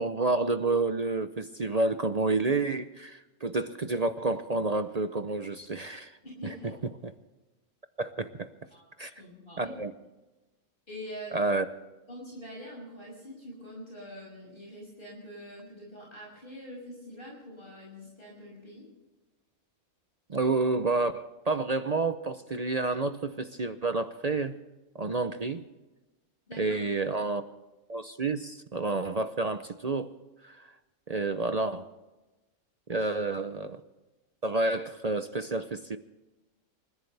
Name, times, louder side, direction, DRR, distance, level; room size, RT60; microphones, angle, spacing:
voice 1, 0.0-6.2 8.0-8.5 9.0-9.1 9.6-9.9 11.3-11.6 20.3-24.6 24.9-25.6 26.6-27.4 27.9-30.1 30.4-30.7 31.1-31.9 32.9-33.8 34.4-36.0, right 3 dB, 40° right, 10 dB, 0.6 m, -29 dB
voice 2, 6.2-6.7 8.7-8.8 9.2-9.7 10.9-11.5 12.1-18.9 26.5-26.8 32.9-33.1, equal, 40° left, -3 dB, 6.5 m, -44 dB
28.5 x 15.0 x 3.4 m, 1.1 s
omnidirectional pair, 1.4 m